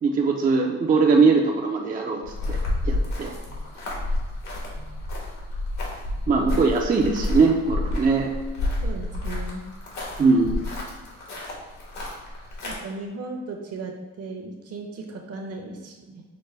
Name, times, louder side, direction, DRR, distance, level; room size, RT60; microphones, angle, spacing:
voice 1, 0.0-2.6 2.9-3.3 6.3-8.3 10.2-10.6, right 4 dB, 30° right, 0 dB, 0.5 m, -21 dB
sound 1, 2.2-12.7, left 2 dB, 70° left, 1.3 m, -30 dB
voice 2, 8.8-9.7 12.6-16.2, right 3 dB, 55° right, 2 dB, 0.8 m, -36 dB
6.0 x 2.1 x 3.2 m, 1.3 s
cardioid pair, 90°, 30 cm